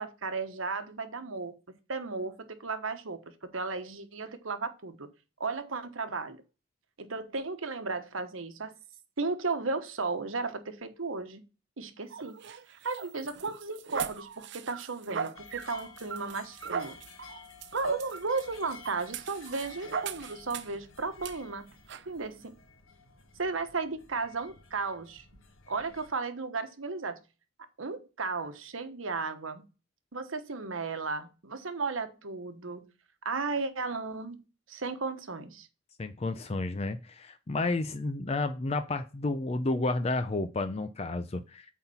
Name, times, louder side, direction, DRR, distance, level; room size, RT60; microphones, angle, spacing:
voice 1, 0.0-1.6 1.9-5.1 5.4-6.4 7.0-8.7 9.2-11.4 11.8-12.4 12.8-17.0 17.7-21.6 22.1-22.6 23.4-25.2 25.7-27.2 27.8-29.7 30.1-32.9 33.2-34.4 34.7-35.7, right 4 dB, 85° right, 1.2 m, -34 dB
sound 1, 12.1-20.8 21.2-21.4 21.9-22.1, right 6 dB, 60° right, 0.5 m, -39 dB
sound 2, 15.4-26.1, left 5 dB, 90° left, 1.3 m, -53 dB
voice 2, 36.0-41.7, left 2 dB, 30° left, 0.5 m, -31 dB
8.5 x 4.0 x 5.5 m
head